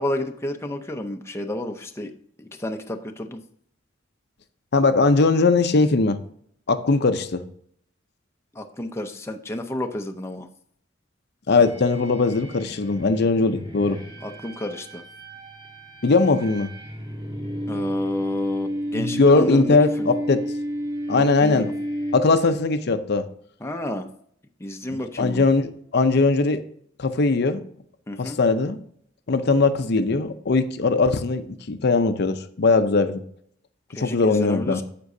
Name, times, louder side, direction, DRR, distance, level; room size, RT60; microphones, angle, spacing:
voice 1, 0.0-2.1 2.4-3.4 8.5-10.5 14.2-15.0 17.7-20.1 21.2-21.7 23.6-24.1 24.6-25.4 28.1-28.4 33.9-34.8, left 1 dB, 15° left, 4 dB, 0.5 m, -31 dB
voice 2, 4.7-6.2 6.7-7.4 11.5-14.0 16.0-16.7 18.9-20.4 21.1-21.7 22.1-23.3 24.9-26.6 27.0-27.6 28.2-28.8 29.3-33.2 33.9-34.8, left 3 dB, 55° left, 9 dB, 0.6 m, -20 dB
sound 1, 11.6-22.7, equal, 25° right, 1.9 m, -32 dB
9.7 x 6.8 x 2.7 m, 0.65 s
head